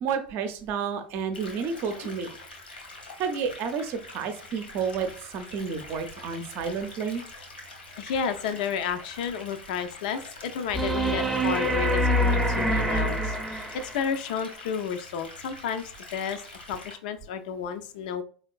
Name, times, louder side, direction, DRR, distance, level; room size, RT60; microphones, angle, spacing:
voice 1, 0.0-2.4 3.2-7.2, right 6 dB, 45° right, 8 dB, 0.6 m, -31 dB
sound 1, 1.3-16.9, left 2 dB, 80° left, 1.0 m, -45 dB
voice 2, 8.0-16.4 16.7-18.2, left 7 dB, 55° left, 9 dB, 0.5 m, -32 dB
sound 2, 10.7-14.1 16.7-16.8, equal, ahead, 0.7 m, -25 dB
4.2 x 3.4 x 2.3 m, 0.42 s
figure-of-eight pair, 80°, 5 cm